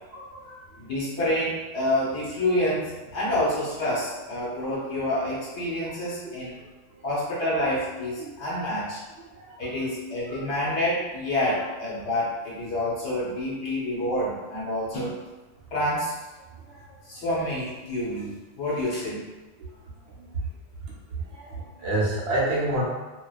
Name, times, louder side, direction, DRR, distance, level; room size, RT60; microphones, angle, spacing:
voice 1, 0.1-0.6 6.9-7.0 8.2-8.7 9.4-9.6 10.3-10.4 16.7-16.9 21.1-22.9, right 1 dB, 65° right, -5 dB, 0.8 m, -29 dB
voice 2, 0.8-6.6 7.0-9.0 9.6-15.2 15.7-16.1 17.0-18.3 18.6-19.2, left 1 dB, 65° left, -8 dB, 1.2 m, -28 dB
2.4 x 2.2 x 2.3 m, 1.2 s
omnidirectional pair, 1.2 m